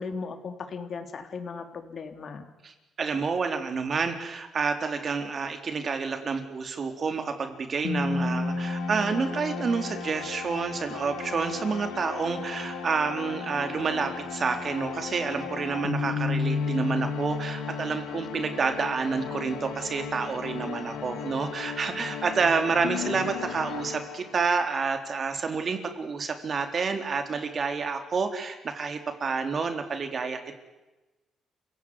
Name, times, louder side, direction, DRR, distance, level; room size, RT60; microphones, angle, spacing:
voice 1, 0.0-2.5, left 5 dB, 50° left, 7 dB, 3.5 m, -37 dB
voice 2, 3.0-30.5, right 5 dB, 45° right, 7 dB, 4.0 m, -29 dB
sound 1, 7.8-24.6, left 5 dB, 90° left, 2.9 m, -34 dB
28.0 x 17.0 x 9.9 m, 1.1 s
cardioid pair, 90°, 0 cm